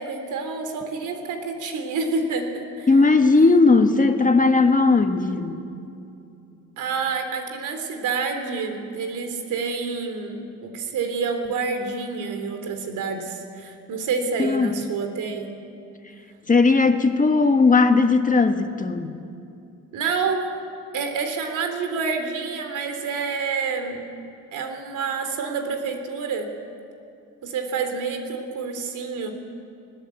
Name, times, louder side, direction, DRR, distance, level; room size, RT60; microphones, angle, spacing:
voice 1, 0.0-2.9 6.8-15.5 19.9-20.4 20.9-24.0 24.5-26.5 27.4-29.3, right 5 dB, 80° right, 6 dB, 3.1 m, -28 dB
voice 2, 2.9-5.6 14.4-14.7 16.5-19.2, left 3 dB, 25° left, 7 dB, 1.5 m, -17 dB
20.5 x 19.5 x 8.3 m, 2.6 s
cardioid pair, 90°, 30 cm